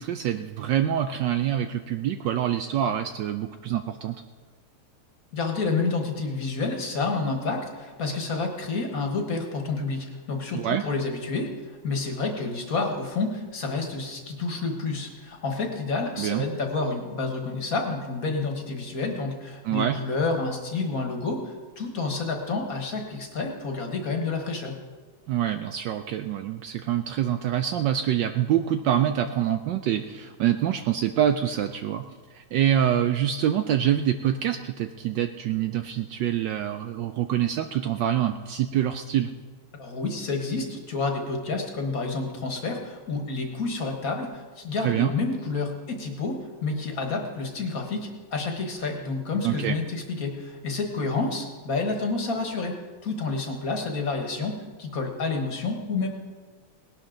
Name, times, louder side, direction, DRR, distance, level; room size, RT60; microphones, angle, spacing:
voice 1, 0.0-4.2 10.5-10.8 16.2-16.4 19.6-20.0 25.3-32.0 32.3-39.3 44.8-45.1 49.4-49.8, right 10 dB, 75° right, 8 dB, 1.1 m, -25 dB
voice 2, 5.3-24.7 39.8-56.1, left 3 dB, 45° left, 3 dB, 1.7 m, -29 dB
19.0 x 11.5 x 3.9 m, 1.4 s
omnidirectional pair, 2.3 m